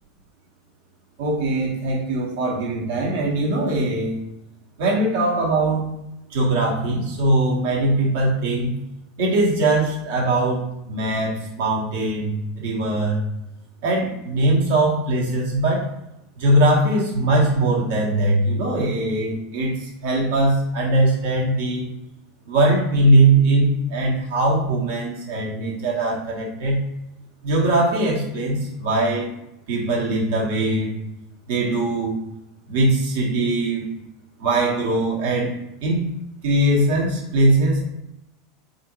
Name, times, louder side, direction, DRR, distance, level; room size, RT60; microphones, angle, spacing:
voice 1, 1.2-4.2 4.8-5.9 6.3-8.7 9.2-13.2 13.8-15.8 16.4-21.9 22.5-26.8 27.4-29.3 29.7-30.9 31.5-32.2 32.7-33.9 34.4-35.5 35.8-36.1 36.4-37.9, right 2 dB, 65° right, -3 dB, 1.3 m, -21 dB
3.5 x 2.7 x 3.0 m, 0.88 s
hypercardioid pair, 85°, 0 cm